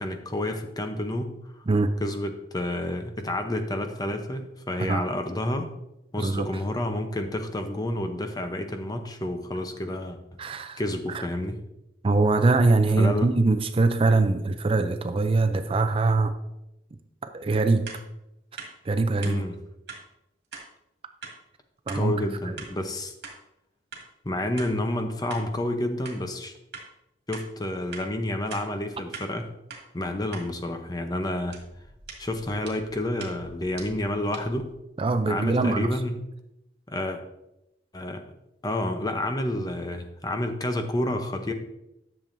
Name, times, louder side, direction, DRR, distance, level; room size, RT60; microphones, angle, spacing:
voice 1, 0.0-1.4 2.0-5.7 6.1-10.2 10.8-11.6 13.0-13.3 19.2-19.6 21.9-23.1 24.2-26.5 27.3-29.5 29.9-31.6 32.2-34.7 35.3-36.2 36.9-37.2 37.9-38.2 38.6-41.5, left 1 dB, 20° left, 6 dB, 0.7 m, -29 dB
voice 2, 10.4-10.8 11.1-11.3 12.0-16.3 17.3-17.9 18.8-19.4 21.9-22.1 35.0-35.9, right 3 dB, 30° right, 9 dB, 0.4 m, -22 dB
sound 1, 17.9-18.0 18.6-18.7 19.2-19.4 19.9-20.0 20.5-20.7 21.2-21.4 21.9-22.0 22.6-22.7 23.2-23.4 23.9-24.1 24.6-24.7 25.3-25.5 26.0-26.2 26.7-26.9 27.3-27.5 27.9-28.1 28.5-28.7 29.1-29.3 29.7-29.8 30.3-30.5 31.5-34.7, right 4 dB, 70° right, 2.0 m, -42 dB
10.5 x 7.0 x 2.6 m, 0.87 s
head